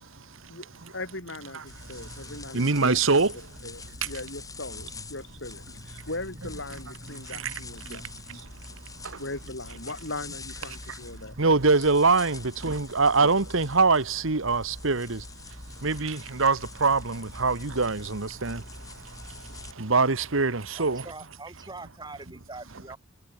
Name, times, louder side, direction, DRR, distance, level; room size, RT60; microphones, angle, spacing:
voice 1, 0.5-3.0 3.6-8.4 9.2-11.4, left 2 dB, 55° left, 7.4 m, -39 dB
sound 1, 1.7-19.7, left 2 dB, 15° left, 4.3 m, -44 dB
voice 2, 2.5-3.3 11.4-15.2 15.8-18.6 19.8-21.0, right 4 dB, 65° right, 1.4 m, -23 dB
voice 3, 20.7-23.0, right 3 dB, 20° right, 3.5 m, -43 dB
head